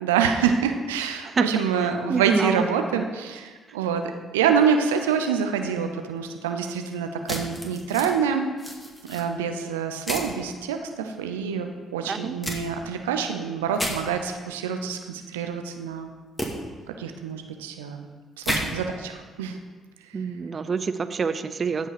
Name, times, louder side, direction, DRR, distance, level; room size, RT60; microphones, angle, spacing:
voice 1, 0.0-8.5 9.1-16.1 16.9-18.1 18.4-19.6 20.0-20.2, right 7 dB, 85° right, 6 dB, 0.7 m, -26 dB
voice 2, 1.2-2.7 2.9-3.1 12.1-12.3 20.1-21.9, right 5 dB, 45° right, 11 dB, 0.5 m, -27 dB
sound 1, 7.3-8.1 8.6-9.2 10.1-10.3 12.4-12.6 13.7-13.9 16.4-16.5 18.4-18.6, equal, 15° left, 2.5 m, -30 dB
15.0 x 5.5 x 4.9 m, 1.5 s
hypercardioid pair, 50°, 0 cm